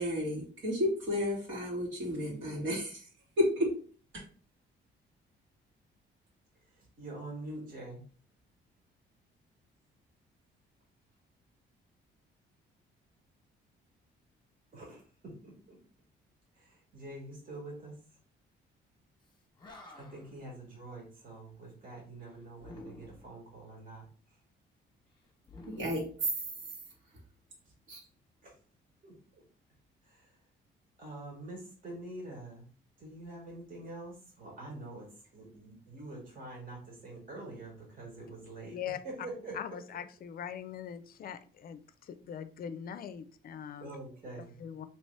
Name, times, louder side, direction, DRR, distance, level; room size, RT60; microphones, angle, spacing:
voice 1, 0.0-3.1 3.4-3.7 25.7-26.3 27.9-28.0, left 1 dB, 70° right, -3 dB, 1.8 m, -32 dB
voice 2, 6.5-8.0 14.7-15.8 16.5-18.0 20.0-24.4 27.6-27.7 28.4-28.6 29.0-29.4 30.0-30.4 31.0-32.7 33.0-38.8 39.0-39.8 43.8-44.6, right 2 dB, 45° right, -3 dB, 1.5 m, -46 dB
Animal, 19.3-19.4 19.6-20.4 22.6-23.4 25.4-26.8, left 2 dB, 20° left, 0.9 m, -51 dB
voice 3, 39.6-43.9 44.6-44.9, left 8 dB, 50° left, 12 dB, 0.4 m, -41 dB
3.2 x 2.9 x 3.1 m, 0.41 s
cardioid pair, 90°, 20 cm